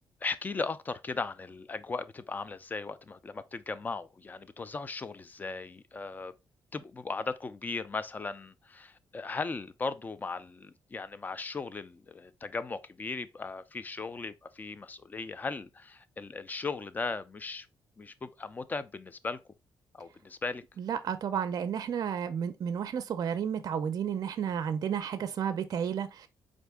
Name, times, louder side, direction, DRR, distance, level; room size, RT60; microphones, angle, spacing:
voice 1, 0.2-6.3 6.7-17.7 18.0-19.4 19.9-20.6, left 4 dB, 20° left, 0.3 m, -37 dB
voice 2, 20.8-26.3, right 8 dB, 50° right, 0.4 m, -32 dB
4.4 x 2.5 x 3.4 m
cardioid pair, 120°, 8 cm